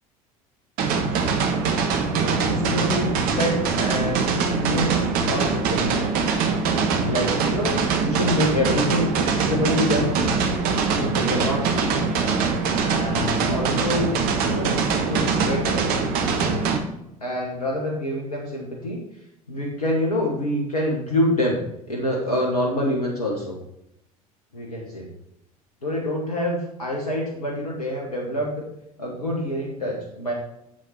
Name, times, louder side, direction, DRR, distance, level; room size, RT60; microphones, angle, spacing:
sound 1, 0.8-16.8, right 5 dB, 55° right, 1.4 m, -23 dB
voice 1, 1.7-6.0 7.0-10.1 10.9-12.0 12.7-14.1 14.4-15.9 17.2-19.0 19.5-21.6 21.9-23.6 24.5-25.1 25.8-28.6 29.0-30.3, left 1 dB, 85° left, -2 dB, 1.5 m, -26 dB
7.7 x 7.1 x 4.4 m, 0.83 s
figure-of-eight pair, 70°, 19 cm